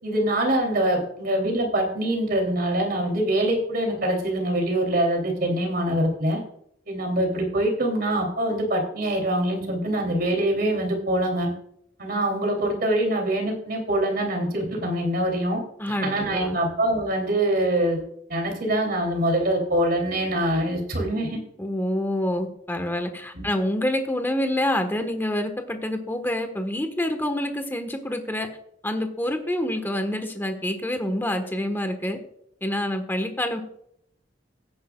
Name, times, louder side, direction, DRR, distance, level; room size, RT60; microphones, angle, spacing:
voice 1, 0.0-6.4 6.9-11.5 12.0-15.6 16.0-18.0 18.3-21.4 23.3-23.5, right 1 dB, 55° right, 2 dB, 3.1 m, -24 dB
voice 2, 15.8-16.6 21.6-28.5 28.8-32.2 32.6-33.6, left 1 dB, 10° left, 7 dB, 1.3 m, -27 dB
16.5 x 9.5 x 2.4 m, 0.71 s
head